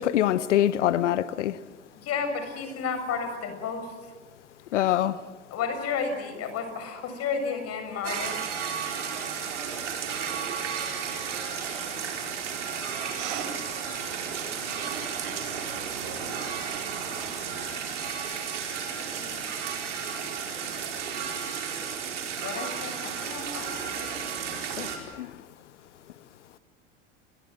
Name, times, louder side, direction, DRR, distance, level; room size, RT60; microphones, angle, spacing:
voice 1, 0.0-1.6 4.7-5.1 24.8-24.9 25.2-25.3, left 12 dB, 75° left, 16 dB, 0.9 m, -24 dB
voice 2, 1.9-3.9 5.5-8.4 22.4-24.2, left 5 dB, 40° left, 7 dB, 7.1 m, -32 dB
sound 1, 8.0-25.0, right 7 dB, 75° right, 4.9 m, -33 dB
voice 3, 11.0-12.1 13.1-13.6 14.7-16.3 17.1-17.2, right 8 dB, 60° right, 8 dB, 5.2 m, -42 dB
29.5 x 22.5 x 8.0 m, 1.3 s
hypercardioid pair, 85°, 36 cm